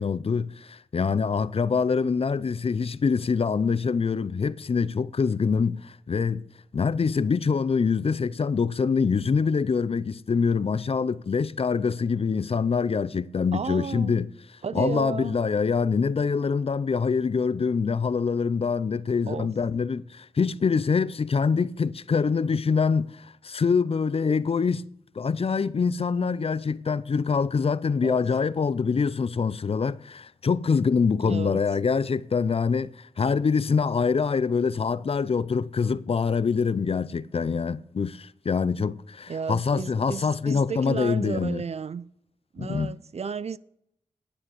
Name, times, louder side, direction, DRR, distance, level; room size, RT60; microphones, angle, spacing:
voice 1, 0.0-6.5 6.7-14.3 14.7-24.9 25.2-41.6 42.6-42.9, left 5 dB, 50° left, 0.5 m, -25 dB
voice 2, 13.5-14.2 14.6-15.4 19.3-19.5 28.0-28.2 31.2-31.6 39.3-42.1 42.5-43.6, right 6 dB, 55° right, 0.5 m, -33 dB
9.9 x 8.6 x 6.8 m
cardioid pair, 45°, 13 cm